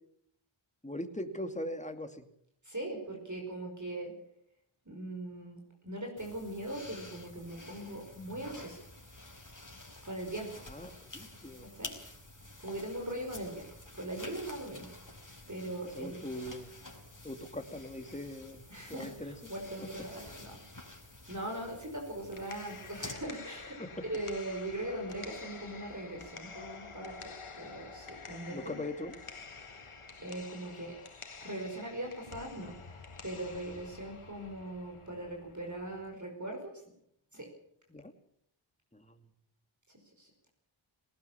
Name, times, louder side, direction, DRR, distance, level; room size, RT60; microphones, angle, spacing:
voice 1, 0.8-2.3 10.7-11.7 15.9-16.7 17.2-18.6 18.9-19.5 19.8-19.9 23.8-23.9 28.5-29.2 37.9-38.1 38.9-39.2, left 1 dB, 15° left, 6 dB, 2.5 m, -41 dB
voice 2, 2.6-4.1 4.8-5.6 5.8-8.8 10.0-10.6 11.6-11.9 12.6-13.7 13.9-14.9 15.5-16.2 18.7-21.0 21.3-23.8 24.1-28.8 30.2-30.9 31.4-36.8 37.3-37.5 40.2-40.5, right 1 dB, 35° right, 2 dB, 5.2 m, -40 dB
Tying hair and ruffle, 6.2-23.1, left 2 dB, 40° left, 5.1 m, -50 dB
water dripping, 22.1-36.1, left 4 dB, 80° left, 1.9 m, -49 dB
19.0 x 19.0 x 7.3 m, 0.71 s
wide cardioid pair, 40°, 50 cm